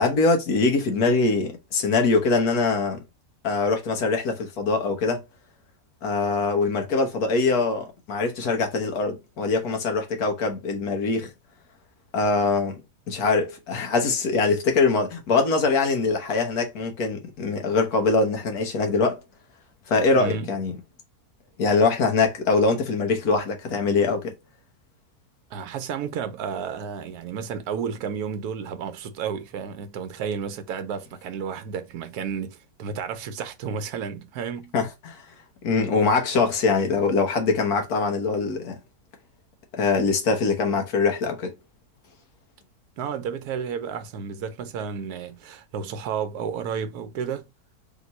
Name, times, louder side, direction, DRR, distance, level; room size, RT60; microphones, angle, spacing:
voice 1, 0.0-3.0 3.4-5.2 6.0-11.3 12.1-12.8 13.1-19.2 19.9-20.8 21.6-24.3 34.7-35.2 35.6-38.8 39.7-41.5, left 4 dB, 75° left, 1.6 m, -23 dB
voice 2, 20.1-20.5 25.5-34.7 36.3-36.4 43.0-47.4, right 7 dB, 80° right, 1.2 m, -32 dB
3.6 x 2.9 x 4.0 m
omnidirectional pair, 1.6 m